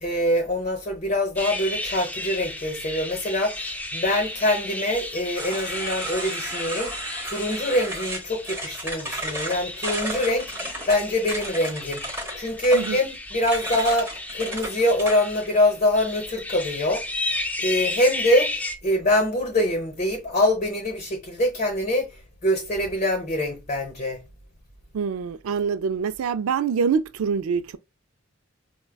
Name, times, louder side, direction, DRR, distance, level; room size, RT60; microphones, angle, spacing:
voice 1, 0.0-10.5 10.9-22.1 22.4-24.2, left 1 dB, 35° left, 0.8 m, -24 dB
sound 1, 1.4-18.8, left 2 dB, 5° left, 0.3 m, -34 dB
sound 2, 5.4-15.5, right 1 dB, 10° right, 0.8 m, -33 dB
voice 2, 24.9-27.8, right 6 dB, 80° right, 0.4 m, -25 dB
4.6 x 2.1 x 2.2 m
head